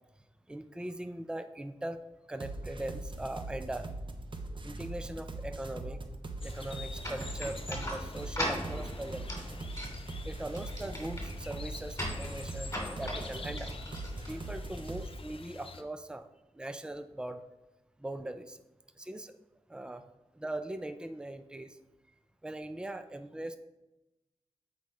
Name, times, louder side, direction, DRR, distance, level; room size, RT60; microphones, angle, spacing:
voice 1, 0.5-2.0 2.3-3.9 4.6-6.0 6.4-9.3 10.2-13.7 14.3-17.4 18.0-18.6 19.0-19.3 19.7-20.0 20.3-21.8 22.4-23.6, right 1 dB, 5° right, 9 dB, 0.5 m, -40 dB
sound 1, 2.3-15.1, right 2 dB, 45° right, 0.7 m, -41 dB
sound 2, 6.4-15.8, left 4 dB, 50° left, 0.6 m, -48 dB
sound 3, 7.0-14.9, equal, 20° left, 2.7 m, -40 dB
8.1 x 5.0 x 4.2 m, 0.99 s
wide cardioid pair, 80°, 12 cm